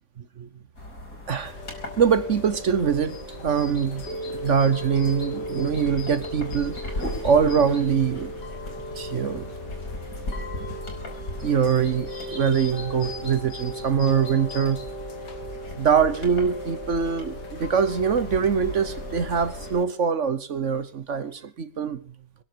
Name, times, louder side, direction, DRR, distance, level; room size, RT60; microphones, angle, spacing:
sound 1, 0.7-19.7, left 2 dB, 55° left, 5.5 m, -38 dB
voice 1, 1.3-1.6 2.0-8.4 8.9-9.5 10.7-10.8 11.4-14.9 15.8-22.0, right 7 dB, 50° right, 1.2 m, -23 dB
Chime / Rain, 1.4-19.8, equal, 75° left, 2.7 m, -37 dB
25.0 x 11.0 x 4.5 m
omnidirectional pair, 1.8 m